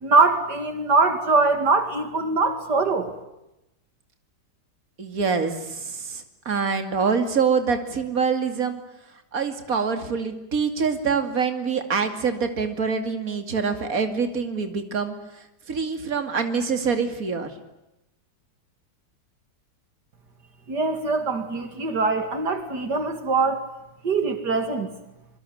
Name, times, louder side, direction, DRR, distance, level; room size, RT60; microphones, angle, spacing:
voice 1, 0.0-3.1 20.7-23.7 24.0-24.9, right 3 dB, 75° right, 8 dB, 3.0 m, -22 dB
voice 2, 5.0-8.8 9.3-15.1 15.7-17.5, right 5 dB, 55° right, 7 dB, 3.0 m, -25 dB
26.0 x 24.0 x 9.3 m, 0.90 s
omnidirectional pair, 1.8 m